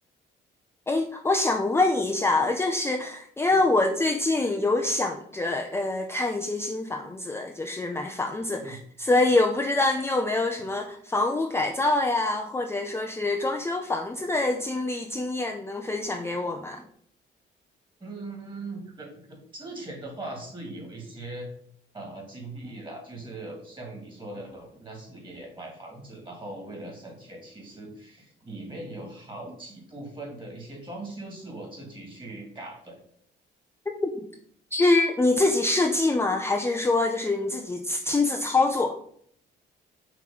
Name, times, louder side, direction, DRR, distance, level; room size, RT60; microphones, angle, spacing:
voice 1, 0.9-16.8 34.0-34.1 34.7-39.0, left 2 dB, 10° left, 4 dB, 0.5 m, -25 dB
voice 2, 18.0-21.5 21.9-33.0, right 2 dB, 25° right, 0 dB, 2.3 m, -40 dB
5.9 x 3.1 x 5.4 m, 0.65 s
cardioid pair, 90°, 20 cm